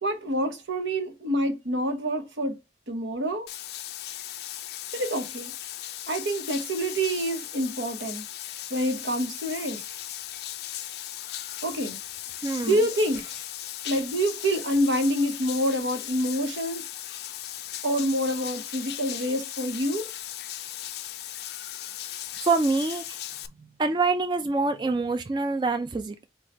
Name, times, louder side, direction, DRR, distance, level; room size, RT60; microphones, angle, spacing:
voice 1, 0.0-2.6 2.9-3.5 4.9-5.5 6.1-8.2 8.7-9.8 11.6-12.0 12.6-13.2 13.8-16.8 17.8-20.1, equal, 85° right, 1.1 m, -27 dB
Bathtub (filling or washing), 3.5-23.5, left 12 dB, 60° left, 0.3 m, -37 dB
voice 2, 12.4-12.8 22.4-23.2 23.8-26.2, right 3 dB, 25° right, 0.3 m, -25 dB
4.6 x 2.3 x 4.1 m
head